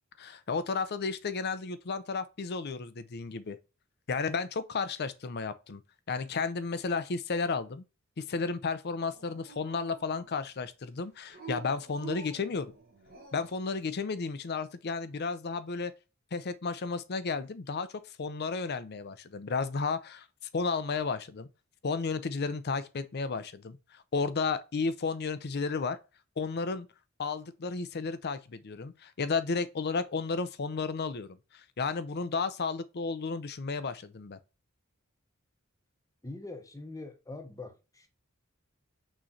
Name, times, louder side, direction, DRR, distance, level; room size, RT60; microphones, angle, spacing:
voice 1, 0.2-3.6 4.1-5.8 6.1-7.8 8.2-12.7 13.3-15.9 16.3-20.3 20.5-21.5 21.8-26.0 26.4-26.9 27.2-34.4, left 4 dB, 50° left, 0.5 m, -33 dB
Dog, 9.0-10.5 11.3-13.6, right 8 dB, 45° right, 1.4 m, -47 dB
voice 2, 36.2-38.1, left 2 dB, 15° left, 0.9 m, -43 dB
6.2 x 3.2 x 2.6 m
head